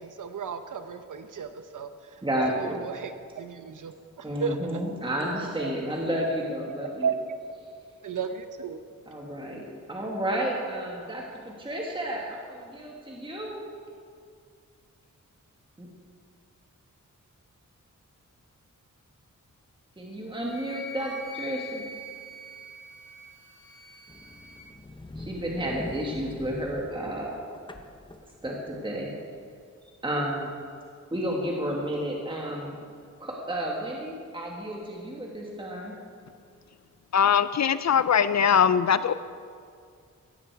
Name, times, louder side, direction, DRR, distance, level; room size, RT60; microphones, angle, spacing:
voice 1, 0.0-2.2 2.5-4.8 5.6-5.7 6.8-7.1 8.0-8.8, right 6 dB, 80° right, 0.8 m, -34 dB
voice 2, 2.2-2.8 4.2-7.1 9.1-13.6 15.8-15.9 20.0-21.8 25.2-27.4 28.4-29.1 30.0-30.6 31.1-32.8 33.2-35.9, right 1 dB, 15° right, 1.7 m, -31 dB
Wind instrument woodwind instrument, 20.5-24.7, left 1 dB, 90° left, 2.8 m, -43 dB
sound 1, 24.1-29.1, left 2 dB, 15° left, 0.9 m, -43 dB
voice 3, 37.1-39.1, left 7 dB, 60° left, 0.5 m, -21 dB
17.0 x 15.0 x 4.7 m
wide cardioid pair, 160°, 31 cm